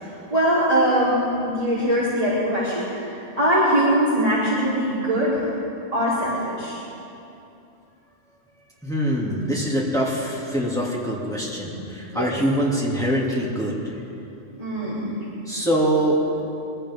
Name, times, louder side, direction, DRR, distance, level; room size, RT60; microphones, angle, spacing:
voice 1, 0.0-5.5 5.9-6.8 12.1-12.3 14.6-15.1, equal, 30° right, -11 dB, 3.7 m, -22 dB
voice 2, 8.8-13.8 15.5-16.2, equal, 5° left, -5 dB, 2.8 m, -24 dB
23.5 x 16.0 x 3.8 m, 2.8 s
omnidirectional pair, 1.3 m